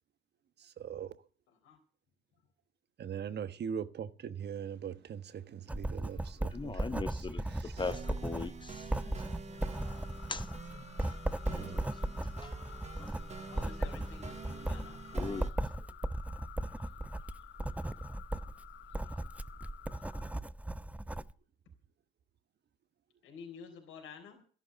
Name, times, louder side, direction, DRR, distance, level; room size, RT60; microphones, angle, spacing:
voice 1, 0.6-1.2 3.0-7.8 11.5-11.8, right 8 dB, 55° right, 1.3 m, -41 dB
Writing, 5.7-21.3, right 1 dB, 5° right, 0.7 m, -37 dB
voice 2, 6.5-12.5 13.0-13.2 15.1-15.5, left 4 dB, 25° left, 0.8 m, -42 dB
sound 1, 7.8-15.5, right 4 dB, 35° right, 1.4 m, -48 dB
sound 2, 9.5-20.4, left 11 dB, 70° left, 1.2 m, -53 dB
voice 3, 13.5-15.0 23.2-24.4, left 6 dB, 90° left, 4.0 m, -50 dB
13.0 x 11.5 x 6.8 m
cardioid pair, 90°, 20 cm